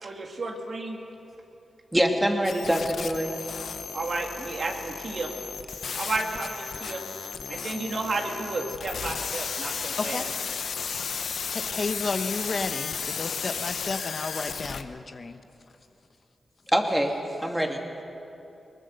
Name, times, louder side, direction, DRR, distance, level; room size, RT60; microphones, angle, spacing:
voice 1, 0.0-1.0 3.9-5.3 5.9-7.0 7.5-10.2, right 2 dB, 55° right, 2 dB, 2.5 m, -32 dB
voice 2, 1.9-3.3 16.7-17.1 17.4-17.8, equal, 10° right, 2 dB, 2.5 m, -24 dB
sound 1, 2.4-14.8, left 6 dB, 75° left, 0.9 m, -34 dB
voice 3, 10.0-10.3 10.9-11.0 11.5-15.4, left 4 dB, 50° left, 8 dB, 1.0 m, -32 dB
22.0 x 20.0 x 6.6 m, 2.8 s
cardioid pair, 65°, 0 cm